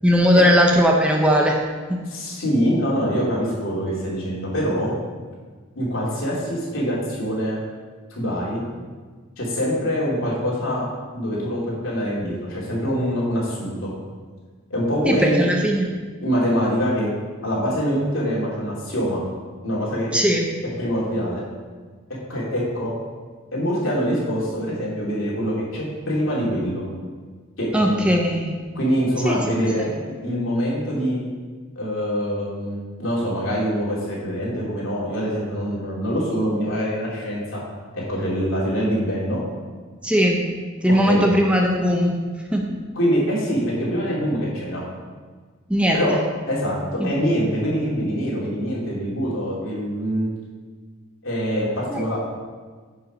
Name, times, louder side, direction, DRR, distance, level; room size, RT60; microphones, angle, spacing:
voice 1, 0.0-1.6 1.9-2.0 15.0-15.9 20.1-20.5 27.7-28.6 29.2-29.4 29.8-29.9 40.0-40.5 40.8-42.1 42.5-42.8 45.7-46.0 47.0-47.1 51.9-52.0, equal, 5° right, 0 dB, 0.7 m, -19 dB
voice 2, 2.1-4.9 5.7-7.6 8.1-8.6 9.4-10.9 11.1-13.9 14.7-15.4 16.2-17.1 17.4-19.2 19.6-20.1 20.8-21.4 22.3-22.9 23.5-26.9 27.6-28.1 28.7-31.2 31.7-37.6 37.9-39.4 40.9-41.4 42.9-44.8 45.9-46.2 46.5-50.3 51.2-52.2, equal, 75° left, -6 dB, 2.9 m, -24 dB
9.4 x 5.5 x 5.1 m, 1.5 s
head